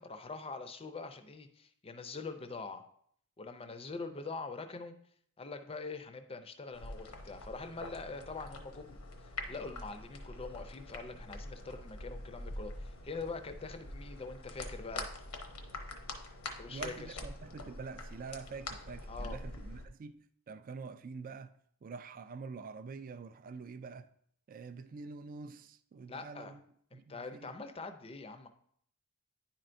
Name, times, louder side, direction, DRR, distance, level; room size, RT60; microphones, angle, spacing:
voice 1, 0.0-2.8 3.4-4.9 5.4-9.0 9.5-15.1 16.6-17.2 19.1-19.4 26.1-26.5 26.9-28.5, left 4 dB, 25° left, 0.5 m, -44 dB
sound 1, 6.7-19.9, left 2 dB, 80° left, 0.8 m, -45 dB
voice 2, 16.7-21.5 21.8-24.1 24.5-26.6 26.9-27.6, right 4 dB, 40° right, 0.3 m, -46 dB
10.0 x 4.4 x 2.6 m
head